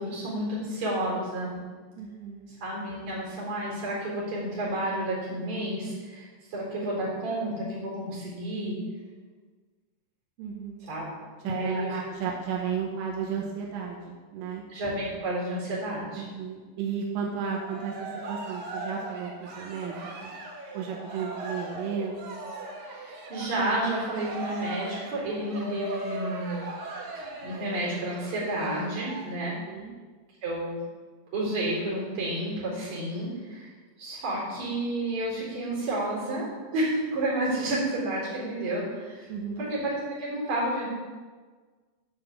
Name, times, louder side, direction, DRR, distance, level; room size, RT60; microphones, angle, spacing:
voice 1, 0.0-1.5 2.6-8.8 10.9-11.0 11.4-12.0 14.7-16.3 23.0-26.6 27.4-29.6 30.4-30.7 31.3-33.7 34.0-36.5 36.7-40.9, right 1 dB, 40° right, -5 dB, 4.9 m, -30 dB
voice 2, 2.0-2.5 10.4-10.8 11.5-14.6 16.2-20.3 20.7-22.4 29.7-30.0 39.3-39.7, right 6 dB, 85° right, -1 dB, 3.6 m, -34 dB
Cheering, 17.4-29.2, right 2 dB, 60° right, 2.0 m, -39 dB
11.0 x 5.9 x 7.0 m, 1.4 s
omnidirectional pair, 5.7 m